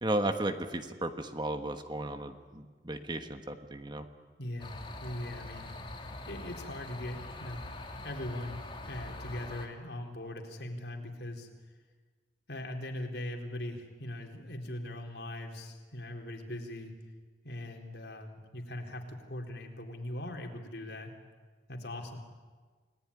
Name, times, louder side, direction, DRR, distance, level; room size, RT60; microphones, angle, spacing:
voice 1, 0.0-4.1, right 1 dB, 25° right, 7 dB, 1.5 m, -34 dB
voice 2, 4.4-5.7 6.3-7.6 8.0-11.7 12.5-16.9 17.4-21.2 21.7-22.2, left 1 dB, 70° left, 2 dB, 3.9 m, -40 dB
sound 1, 4.6-9.7, left 2 dB, 30° left, 2.6 m, -44 dB
29.5 x 18.5 x 9.9 m, 1.4 s
head